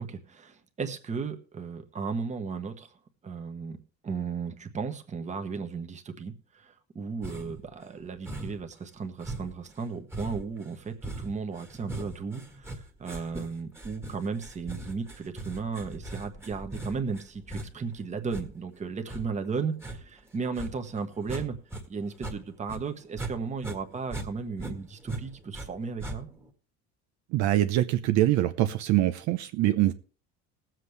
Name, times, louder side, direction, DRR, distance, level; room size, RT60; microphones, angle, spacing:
voice 1, 0.0-2.9 3.2-3.8 4.0-21.6 21.9-26.3, right 5 dB, 25° right, 6 dB, 1.3 m, -35 dB
sound 1, 7.2-7.7 8.3-8.7 9.2-21.8 22.1-23.3 23.6-25.7 26.0-26.5, right 2 dB, 10° right, 1.6 m, -40 dB
voice 2, 27.3-29.9, right 14 dB, 65° right, 9 dB, 0.8 m, -24 dB
20.0 x 7.7 x 3.3 m, 0.36 s
cardioid pair, 145°, 30 cm